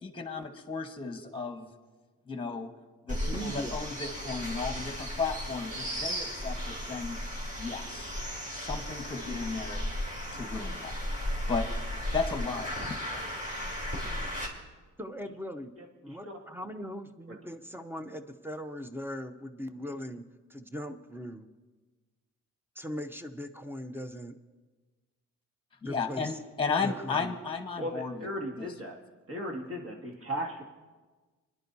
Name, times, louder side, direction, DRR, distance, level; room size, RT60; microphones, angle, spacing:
voice 1, 0.0-1.7 2.3-2.7 3.1-7.2 7.5-8.2 8.5-9.8 10.3-11.1 11.5-11.6 12.1-13.2 25.8-28.3 28.6-28.7, left 4 dB, 15° left, 6 dB, 1.2 m, -34 dB
sound 1, 3.1-14.5, equal, 25° right, 3.6 m, -35 dB
voice 2, 3.3-3.8 15.0-15.7 16.0-20.2 20.5-21.5 22.8-24.4 25.8-26.3 26.8-27.3, equal, 5° right, 7 dB, 0.7 m, -39 dB
voice 3, 15.8-16.3 17.3-17.4 27.8-29.0 29.3-30.6, equal, 45° right, 1 dB, 2.2 m, -37 dB
24.5 x 10.5 x 2.7 m, 1.3 s
cardioid pair, 90°, 30 cm